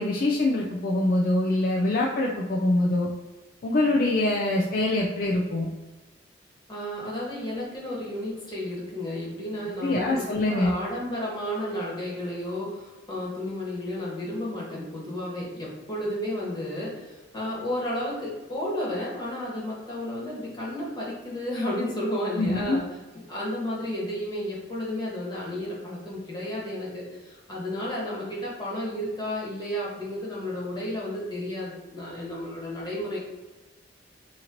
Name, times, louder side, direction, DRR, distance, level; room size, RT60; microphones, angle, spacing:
voice 1, 0.0-3.1 3.6-5.7 9.8-10.7 22.4-22.8, left 2 dB, 55° left, -2 dB, 0.4 m, -24 dB
voice 2, 6.7-22.8 23.3-33.2, left 1 dB, 25° left, -5 dB, 1.2 m, -32 dB
2.9 x 2.8 x 3.8 m, 1.2 s
head